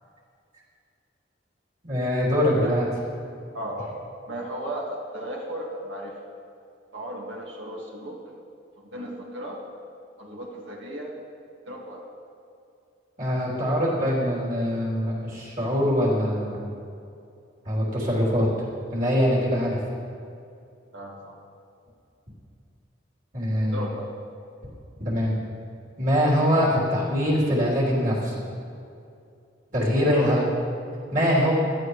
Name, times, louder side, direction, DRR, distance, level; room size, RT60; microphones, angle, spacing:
voice 1, 1.8-2.9 13.2-16.6 17.7-18.5 18.9-19.8 23.3-23.9 25.0-25.3 26.0-28.3 29.7-30.4 31.1-31.5, equal, 45° right, -5 dB, 3.5 m, -23 dB
voice 2, 3.5-3.9 4.3-6.2 6.9-8.2 8.8-9.6 10.2-11.1 11.7-12.0 20.9-21.4 23.5-24.0 30.1-30.4, right 1 dB, 80° right, -2 dB, 2.1 m, -35 dB
16.0 x 12.0 x 3.3 m, 2.5 s
head